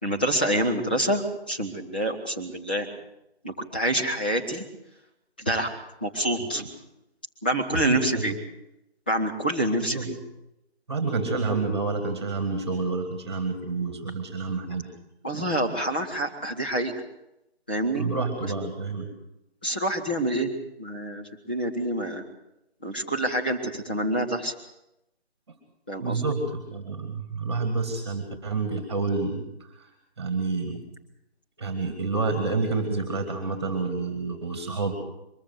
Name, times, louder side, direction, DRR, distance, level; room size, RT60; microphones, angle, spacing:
voice 1, 0.0-2.9 3.4-4.6 5.4-5.7 6.0-6.6 7.4-8.3 9.1-10.1 15.2-16.9 17.7-18.0 18.4-18.5 19.6-20.5 20.8-22.2 22.8-24.5 25.9-26.2, right 1 dB, 10° left, -2 dB, 1.0 m, -27 dB
voice 2, 7.7-8.3 9.9-10.1 10.9-14.9 17.9-19.1 26.0-29.9 30.2-30.8 31.6-34.9, right 3 dB, 25° right, 6 dB, 2.4 m, -29 dB
23.0 x 14.5 x 7.8 m, 0.86 s
figure-of-eight pair, 165°, 32 cm